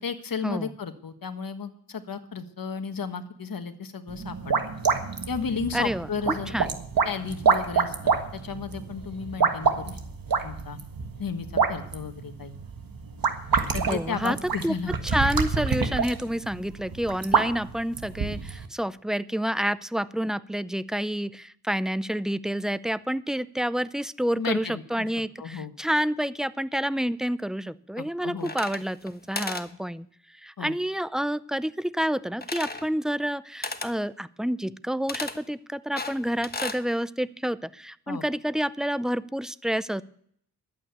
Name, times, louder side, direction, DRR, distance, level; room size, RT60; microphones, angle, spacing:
voice 1, 0.0-4.6 5.3-6.7 7.0-10.0 10.4-10.8 11.2-12.5 13.7-14.9 24.3-25.1 25.4-25.7 28.0-28.5 30.6-30.7 38.1-38.2, left 5 dB, 65° left, 8 dB, 1.4 m, -34 dB
sound 1, 4.1-18.7, right 5 dB, 65° right, 1.6 m, -27 dB
voice 2, 5.7-6.8 13.9-14.7 15.0-30.1 30.4-40.0, equal, ahead, 17 dB, 0.5 m, -29 dB
sound 2, 28.4-29.1 29.3-29.7 32.4-32.9 33.6-33.9 35.1-35.4 36.0-36.8, left 3 dB, 25° left, 1.3 m, -34 dB
11.5 x 8.7 x 8.1 m, 0.65 s
cardioid pair, 50°, 37 cm